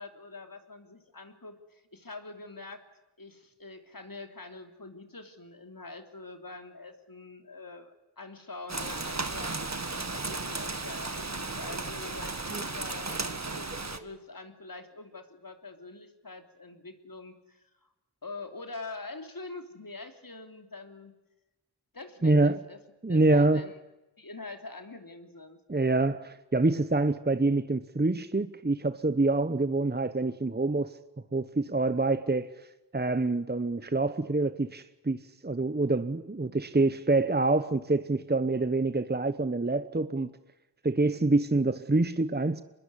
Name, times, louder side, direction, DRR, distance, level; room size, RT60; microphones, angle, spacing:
voice 1, 0.0-2.8 3.2-9.6 9.9-17.9 18.2-21.1 21.9-22.8 23.1-23.8 24.2-25.6, left 3 dB, 55° left, 3.2 m, -45 dB
Rain, 8.7-14.0, right 3 dB, 40° right, 1.8 m, -35 dB
voice 2, 22.2-22.6 23.0-23.7 25.7-31.0 31.3-32.5 32.9-40.3 40.8-42.6, right 2 dB, 25° right, 1.1 m, -26 dB
25.0 x 21.0 x 9.9 m
wide cardioid pair, 40°, 42 cm